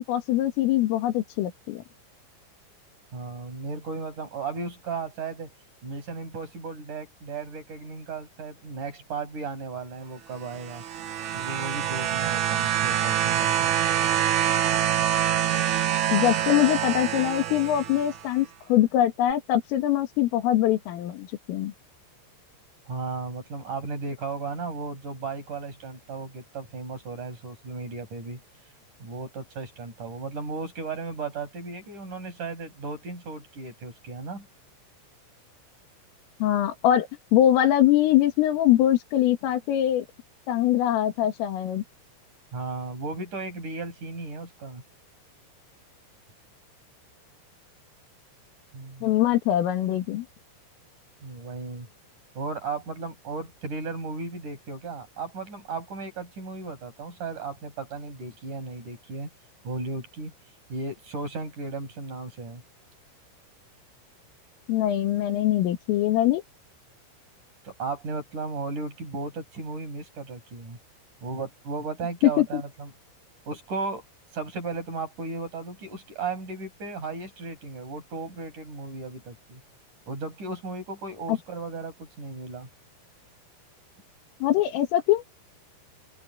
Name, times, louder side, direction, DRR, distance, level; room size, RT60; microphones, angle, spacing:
voice 1, 0.0-1.8 16.1-21.7 36.4-37.1 37.3-40.1 40.5-41.8 49.0-50.3 64.7-66.4 72.4-72.6 81.3-81.4 84.4-85.2, left 12 dB, 85° left, 4.7 m, -23 dB
voice 2, 3.1-5.5 5.8-10.8 11.3-13.7 22.9-28.4 29.0-34.5 42.5-44.8 48.7-49.2 51.2-51.9 52.4-59.3 59.6-60.3 60.7-62.6 67.6-70.8 71.2-72.9 73.5-74.0 74.3-79.6 80.1-82.7, right 4 dB, 40° right, 8.8 m, -35 dB
sound 1, 10.5-18.2 19.3-19.4, right 10 dB, 85° right, 1.7 m, -25 dB
open air
omnidirectional pair, 5.7 m